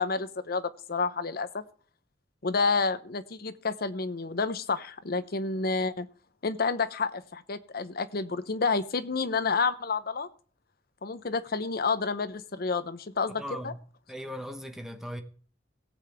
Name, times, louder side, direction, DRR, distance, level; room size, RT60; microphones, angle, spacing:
voice 1, 0.0-1.6 2.4-6.1 6.4-10.3 11.0-13.7, left 4 dB, 55° left, 0.8 m, -29 dB
voice 2, 13.4-13.8 14.1-15.2, equal, 5° right, 1.1 m, -38 dB
17.5 x 7.7 x 3.5 m
head